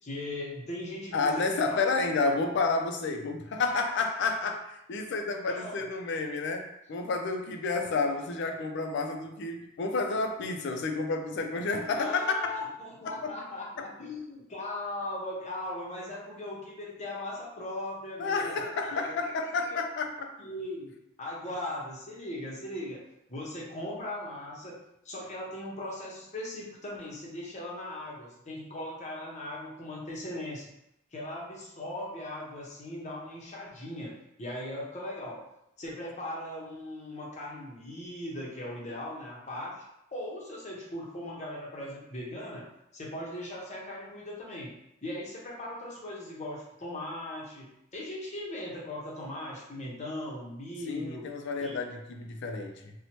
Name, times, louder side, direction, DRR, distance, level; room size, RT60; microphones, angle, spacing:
voice 1, 0.0-1.8 5.5-5.8 11.9-18.5 18.9-19.2 20.4-23.0 23.3-24.8 25.0-30.7 31.1-34.1 34.4-35.4 35.8-39.7 40.1-42.6 42.9-44.7 45.0-51.2 51.6-51.8, left 1 dB, 35° left, -4 dB, 0.7 m, -39 dB
voice 2, 1.1-12.5 13.1-13.3 18.2-20.3 50.9-52.9, left 3 dB, 60° left, 5 dB, 0.4 m, -30 dB
2.8 x 2.1 x 2.9 m, 0.82 s
head